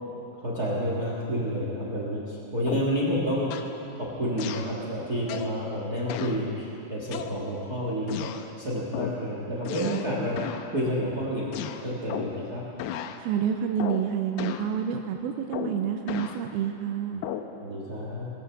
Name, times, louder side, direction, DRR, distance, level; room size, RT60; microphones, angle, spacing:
voice 1, 0.4-3.5 3.9-8.3 8.6-10.4 10.7-11.5 11.8-12.6 17.6-18.3, equal, 70° right, -5 dB, 0.9 m, -29 dB
sound 1, 2.7-3.0 3.5-3.8 4.4-4.8 5.3-5.6 6.1-6.4 7.1-7.7 8.1-8.5 8.9-9.2 9.7-10.1 10.4-10.7 11.5-12.5 12.8-13.2 13.8-14.1 14.4-14.7 15.5-16.4 17.2-17.5, left 10 dB, 80° left, 2.4 m, -34 dB
voice 2, 13.2-17.3, right 8 dB, 85° right, 5 dB, 2.2 m, -28 dB
21.5 x 7.4 x 7.1 m, 2.9 s
omnidirectional pair, 4.9 m